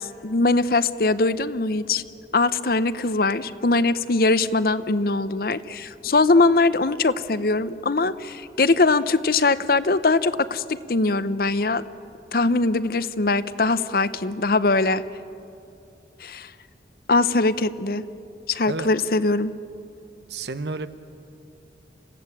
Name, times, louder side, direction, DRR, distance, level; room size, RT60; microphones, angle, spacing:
voice 1, 0.0-2.0 2.3-10.6 10.9-11.8 12.3-15.0 16.2-16.5 17.1-18.0 18.5-19.5, left 3 dB, 55° left, 14 dB, 0.7 m, -21 dB
voice 2, 20.3-20.9, right 3 dB, 70° right, 12 dB, 0.9 m, -30 dB
27.5 x 16.0 x 8.5 m, 2.6 s
head